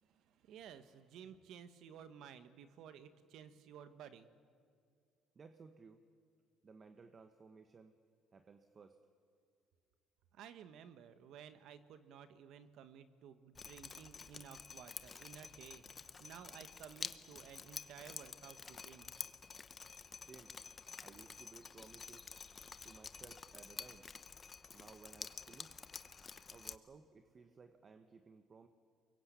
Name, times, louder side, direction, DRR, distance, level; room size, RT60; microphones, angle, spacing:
voice 1, 0.0-4.3 10.3-19.1, right 8 dB, 70° right, 11 dB, 1.4 m, -55 dB
voice 2, 5.3-6.0 6.6-8.0 8.3-9.0 20.2-20.5 21.0-22.3 22.8-24.1 24.7-25.8 26.5-28.7, right 4 dB, 35° right, 8 dB, 1.2 m, -58 dB
Drip, 13.5-26.7, left 5 dB, 30° left, 0.9 m, -50 dB
24.0 x 22.0 x 8.4 m, 2.2 s
cardioid pair, 110°, 0 cm